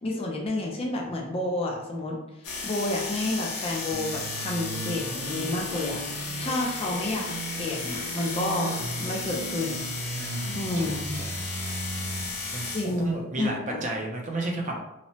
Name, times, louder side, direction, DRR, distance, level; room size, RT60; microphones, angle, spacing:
voice 1, 0.0-2.2 2.6-9.8 10.5-11.2 12.7-13.8, left 2 dB, 25° left, -1 dB, 0.4 m, -30 dB
sound 1, 2.4-13.0, left 3 dB, 85° left, 0.5 m, -35 dB
sound 2, 3.9-13.8, right 2 dB, 85° right, 0.5 m, -37 dB
voice 2, 10.1-11.4 12.5-14.8, right 2 dB, 35° right, 0 dB, 0.4 m, -33 dB
2.9 x 2.1 x 2.7 m, 0.87 s
head